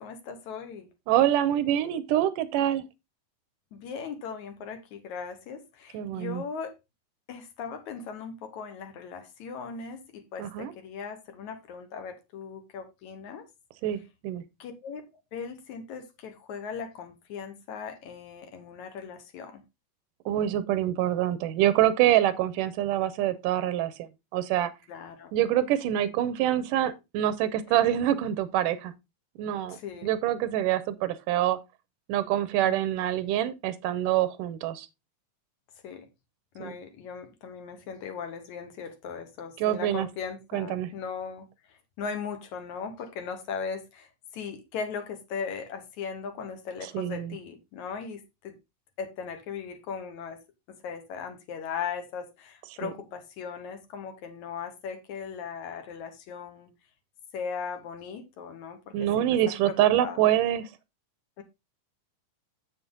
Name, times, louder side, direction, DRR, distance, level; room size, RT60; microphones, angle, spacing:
voice 1, 0.0-0.9 3.7-6.8 7.3-13.5 14.6-15.0 15.3-19.6 24.9-25.3 27.7-28.0 29.7-30.1 32.6-33.0 35.8-36.1 36.6-48.6 49.0-50.4 50.7-56.7 57.3-59.4 59.6-59.7 60.0-60.3 61.4-61.5, left 6 dB, 65° left, 2.4 m, -38 dB
voice 2, 1.1-2.8 5.9-6.4 10.4-10.7 13.8-14.4 20.3-23.9 24.3-24.7 25.3-28.9 29.4-31.6 32.1-34.9 36.6-36.7 39.6-40.1 40.5-40.9 46.9-47.4 52.8-52.9 58.9-60.6, right 12 dB, 80° right, 2.3 m, -25 dB
7.5 x 7.3 x 3.8 m
omnidirectional pair, 3.8 m